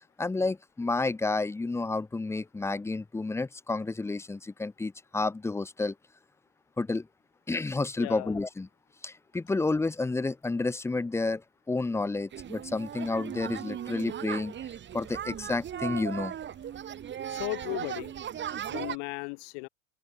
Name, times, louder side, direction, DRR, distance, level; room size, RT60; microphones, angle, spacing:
voice 1, 0.2-5.9 6.8-7.1 7.5-8.7 9.0-11.4 11.7-14.5 14.9-16.3, left 3 dB, 5° left, 0.7 m, -30 dB
voice 2, 8.0-8.4 17.3-18.1 18.7-19.7, left 40 dB or more, 60° left, 0.8 m, -36 dB
sound 1, 12.3-19.0, right 9 dB, 30° right, 2.2 m, -37 dB
open air
supercardioid pair, 115°, 38 cm